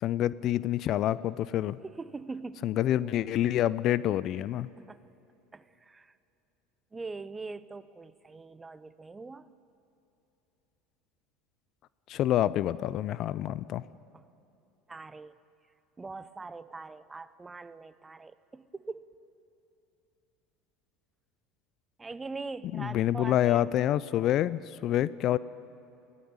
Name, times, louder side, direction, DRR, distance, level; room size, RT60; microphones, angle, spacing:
voice 1, 0.0-1.8 2.6-4.7 12.1-13.8 22.7-25.4, left 12 dB, 55° left, 19 dB, 0.5 m, -27 dB
voice 2, 1.8-2.8 3.0-3.6 4.8-5.0 5.5-6.1 6.9-9.5 14.1-14.3 14.9-15.4 16.0-19.1 22.0-23.7, right 3 dB, 20° right, 16 dB, 0.8 m, -42 dB
20.5 x 15.5 x 8.9 m, 2.9 s
hypercardioid pair, 80°, 0 cm